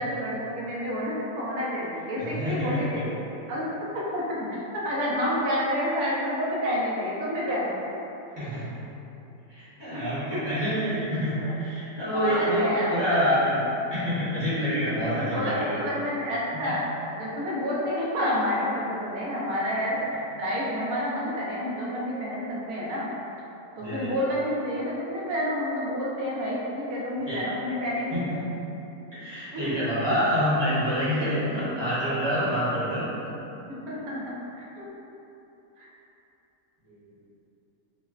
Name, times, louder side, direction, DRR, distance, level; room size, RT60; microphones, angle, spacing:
voice 1, 0.0-3.2 3.5-3.7 4.1-4.6 4.8-7.8 9.9-10.1 10.5-10.6 11.4-11.6 12.1-13.4 15.2-23.1 23.8-28.2 29.5-29.8 30.1-30.2 32.5-32.6 33.7-34.3 34.8-34.9 35.8-35.9, equal, 75° right, -6 dB, 1.1 m, -29 dB
voice 2, 2.2-2.8 8.3-8.8 9.5-13.6 13.9-16.0 23.8-24.1 27.3-27.4 28.1-28.2 29.1-33.1 36.9-37.0, equal, 20° right, -12 dB, 0.8 m, -27 dB
5.3 x 2.1 x 2.4 m, 3.0 s
omnidirectional pair, 1.7 m